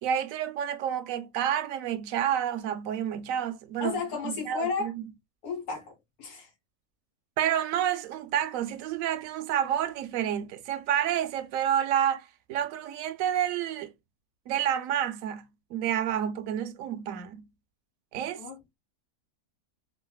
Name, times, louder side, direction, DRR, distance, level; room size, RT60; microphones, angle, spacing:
voice 1, 0.0-4.9 7.4-13.9 14.5-17.4 18.1-18.4, right 10 dB, 70° right, 0.9 m, -29 dB
voice 2, 3.8-4.9 5.4-5.9 6.2-6.5 18.3-18.8, left 4 dB, 80° left, 1.8 m, -33 dB
3.4 x 2.5 x 2.2 m
omnidirectional pair, 1.6 m